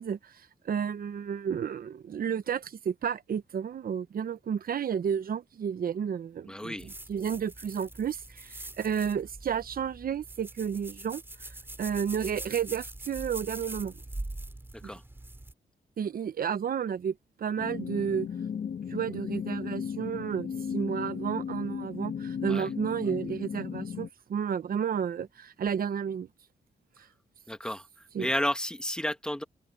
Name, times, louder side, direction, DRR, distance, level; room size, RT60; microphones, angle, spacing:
voice 1, 0.0-6.7 7.1-14.0 14.8-14.9 16.0-18.3 18.9-26.3 28.1-28.3, right 7 dB, 60° right, 1.0 m, -32 dB
voice 2, 6.5-6.9 14.7-15.0 22.4-22.7 27.5-29.4, left 1 dB, 5° left, 1.8 m, -32 dB
sound 1, 6.8-15.5, right 2 dB, 15° right, 2.9 m, -43 dB
sound 2, 17.6-24.1, left 7 dB, 60° left, 2.4 m, -35 dB
cardioid pair, 115°, 17 cm